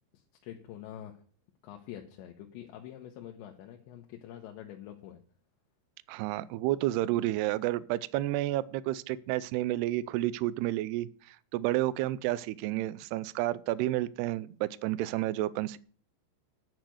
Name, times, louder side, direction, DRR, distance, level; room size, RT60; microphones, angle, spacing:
voice 1, 0.1-1.2 1.6-5.2, left 11 dB, 80° left, 1 dB, 3.3 m, -46 dB
voice 2, 6.1-15.8, right 15 dB, 80° right, 17 dB, 2.4 m, -31 dB
10.5 x 6.7 x 7.9 m, 0.42 s
omnidirectional pair, 5.3 m